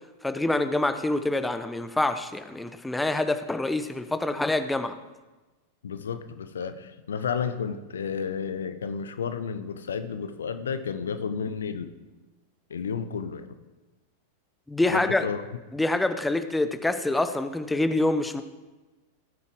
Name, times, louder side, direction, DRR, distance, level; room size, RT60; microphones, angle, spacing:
voice 1, 0.2-4.9 14.7-15.3 15.7-18.4, left 2 dB, 5° left, 9 dB, 0.8 m, -26 dB
voice 2, 5.8-11.9 12.7-13.5 14.9-15.4, left 6 dB, 65° left, 10 dB, 0.8 m, -32 dB
17.5 x 9.5 x 3.6 m, 1.2 s
figure-of-eight pair, 90°, 0 cm